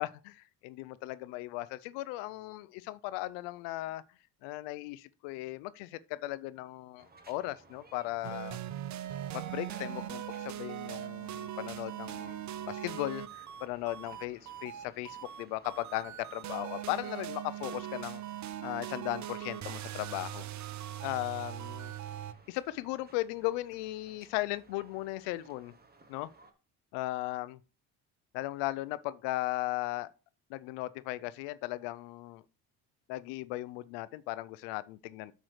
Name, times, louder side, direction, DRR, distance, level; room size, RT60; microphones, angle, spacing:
voice 1, 0.0-4.0 4.4-8.6 9.3-18.2 18.6-20.4 21.0-21.9 22.5-25.7 26.1-26.3 26.9-27.6 28.3-30.1 30.5-32.4 33.1-35.3, left 17 dB, 90° left, 0.5 m, -37 dB
sound 1, 7.0-26.5, right 3 dB, 20° right, 1.1 m, -59 dB
sound 2, 8.2-22.3, right 11 dB, 45° right, 0.5 m, -40 dB
8.9 x 6.3 x 3.2 m
supercardioid pair, 90°, 42 cm